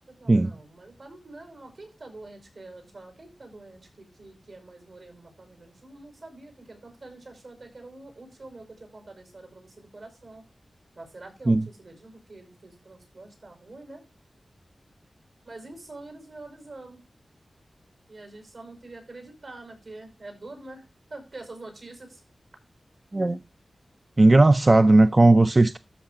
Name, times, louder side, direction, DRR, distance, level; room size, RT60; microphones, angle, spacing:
voice 1, 0.1-10.4 10.9-14.0 15.4-17.0 18.1-20.8 21.1-22.2, right 2 dB, 70° right, 5.3 m, -45 dB
voice 2, 24.2-25.8, right 2 dB, 30° right, 0.4 m, -17 dB
13.0 x 5.5 x 3.8 m
wide cardioid pair, 90°, 0 cm